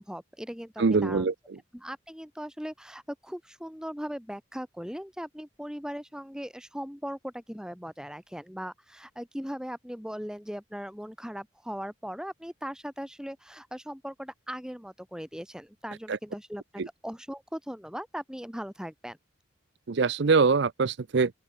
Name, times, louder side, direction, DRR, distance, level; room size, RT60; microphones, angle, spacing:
voice 1, 0.0-1.3 1.7-19.2, equal, 5° right, 6.4 m, -39 dB
voice 2, 0.8-1.3 16.1-16.2 16.8-16.9 19.9-21.3, right 4 dB, 60° right, 0.5 m, -23 dB
open air
head